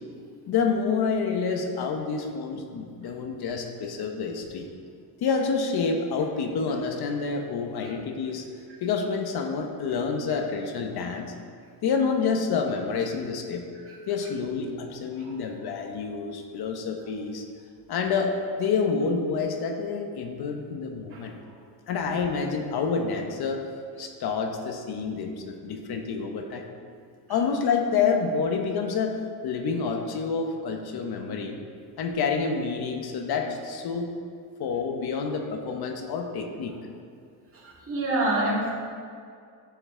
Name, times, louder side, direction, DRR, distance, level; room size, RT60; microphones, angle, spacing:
voice 1, 0.5-4.7 5.2-8.5 8.8-11.3 11.8-13.7 14.1-17.4 17.9-18.3 18.6-21.3 21.9-23.6 24.0-26.6 27.3-29.2 29.4-31.6 32.0-34.1 34.6-36.8, left 5 dB, 65° left, 4 dB, 1.0 m, -28 dB
voice 2, 37.6-38.7, right 2 dB, 30° right, -6 dB, 2.2 m, -26 dB
12.0 x 5.6 x 3.7 m, 2.2 s
cardioid pair, 140°, 42 cm